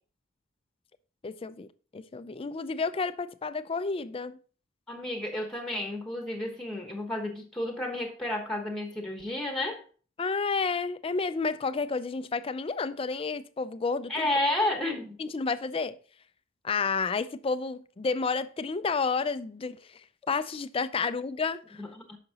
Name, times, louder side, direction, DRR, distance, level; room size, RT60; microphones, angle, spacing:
voice 1, 1.2-1.7 1.9-4.4 10.2-14.3 15.2-16.0 16.6-21.8, left 4 dB, 25° left, 0.4 m, -31 dB
voice 2, 4.9-9.8 14.1-15.2 21.8-22.2, left 1 dB, 5° left, 1.1 m, -31 dB
9.3 x 5.9 x 2.8 m
head